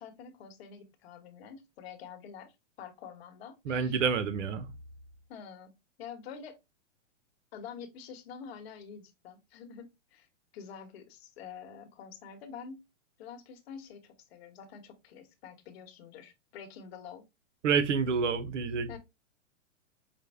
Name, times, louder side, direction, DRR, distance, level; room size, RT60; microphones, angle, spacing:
voice 1, 0.0-2.5 2.8-4.0 5.3-5.7 6.0-6.6 7.5-10.3 10.5-12.8 13.2-17.2 18.9-19.0, left 7 dB, 55° left, 1.1 m, -47 dB
voice 2, 3.7-4.7 17.6-19.0, right 6 dB, 70° right, 0.9 m, -28 dB
5.2 x 2.1 x 3.4 m
hypercardioid pair, 140°, 38 cm